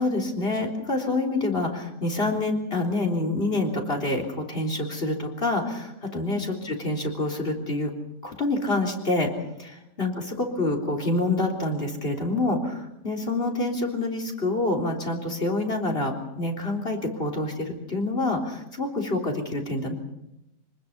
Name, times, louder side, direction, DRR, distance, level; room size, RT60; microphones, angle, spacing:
voice 1, 0.0-7.9 8.2-9.3 9.6-19.9, left 2 dB, 35° left, 1 dB, 3.9 m, -27 dB
26.0 x 20.0 x 5.6 m, 0.89 s
omnidirectional pair, 1.7 m